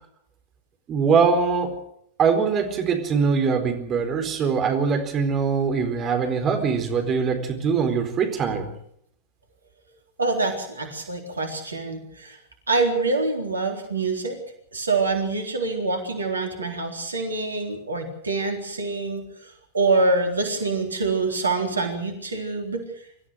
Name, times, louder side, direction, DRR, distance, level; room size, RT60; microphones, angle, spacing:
voice 1, 0.9-1.7 2.2-8.7, right 5 dB, 30° right, 5 dB, 4.3 m, -22 dB
voice 2, 10.2-12.4 12.7-14.4 14.7-22.8, right 3 dB, 75° right, 4 dB, 3.9 m, -25 dB
25.5 x 14.5 x 7.8 m, 0.68 s
figure-of-eight pair, 90°, 0 cm